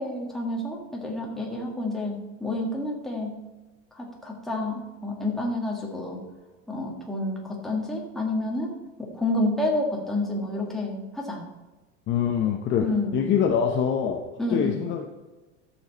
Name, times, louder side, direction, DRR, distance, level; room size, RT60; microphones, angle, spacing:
voice 1, 0.0-3.4 3.9-6.2 6.7-8.7 9.0-11.4 12.8-13.3 14.4-14.7, left 2 dB, ahead, -2 dB, 1.8 m, -29 dB
voice 2, 12.1-12.8 13.1-14.2 14.5-15.0, left 8 dB, 30° left, 2 dB, 0.8 m, -24 dB
12.5 x 7.2 x 4.1 m, 1.2 s
supercardioid pair, 155°, 38 cm